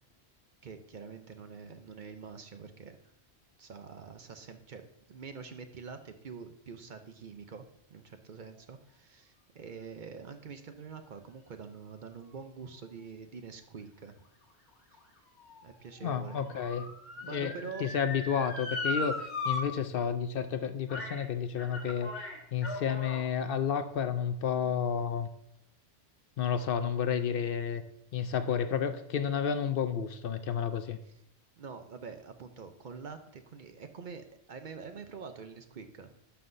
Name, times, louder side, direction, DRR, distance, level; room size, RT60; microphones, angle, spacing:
voice 1, 0.6-3.0 3.6-4.8 5.1-14.2 14.9-15.0 15.6-16.4 17.2-17.9 31.6-36.1, right 5 dB, 55° right, 7 dB, 0.7 m, -46 dB
Motor vehicle (road) / Siren, 14.4-19.6 20.0-20.1 20.9-21.2 21.6-23.2 24.0-24.1, left 3 dB, 85° left, 1.9 m, -38 dB
voice 2, 16.0-16.9 17.3-17.5 17.8-25.3 26.4-27.8 28.1-31.0, left 7 dB, 65° left, 10 dB, 0.7 m, -31 dB
11.5 x 5.7 x 2.6 m, 0.77 s
omnidirectional pair, 1.1 m